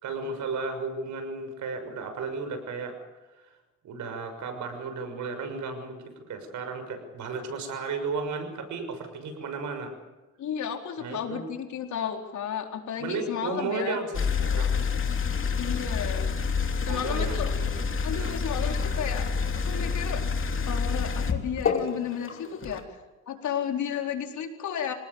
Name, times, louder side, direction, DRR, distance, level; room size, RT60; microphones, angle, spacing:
voice 1, 0.0-2.9 3.8-9.9 11.0-11.4 13.0-14.9 16.9-17.7 18.1-18.4, right 4 dB, 75° right, 7 dB, 6.4 m, -34 dB
voice 2, 10.4-14.0 15.6-16.3 16.6-17.5 18.0-19.3 19.7-20.2 20.6-23.0 23.3-24.9, left 8 dB, 70° left, 3 dB, 4.3 m, -33 dB
sound 1, 14.1-22.8, left 5 dB, 45° left, 2.9 m, -28 dB
27.0 x 19.0 x 7.3 m, 1.2 s
cardioid pair, 90°, 30 cm